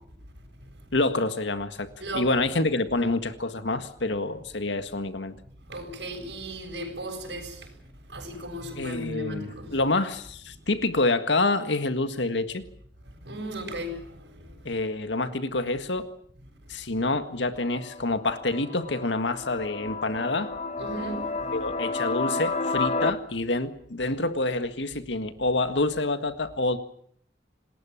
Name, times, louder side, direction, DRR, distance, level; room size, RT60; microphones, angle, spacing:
voice 1, 0.9-1.9 2.1-5.4 8.8-12.6 14.6-16.1 16.7-20.5 21.5-26.8, left 2 dB, 80° left, 1.8 m, -27 dB
voice 2, 2.0-2.4 5.7-7.7 8.0-9.8 10.6-10.7 13.2-14.6 20.8-21.5, right 1 dB, 70° right, 7.8 m, -36 dB
sound 1, 17.6-23.1, left 3 dB, 40° left, 1.4 m, -31 dB
27.5 x 20.0 x 7.3 m
head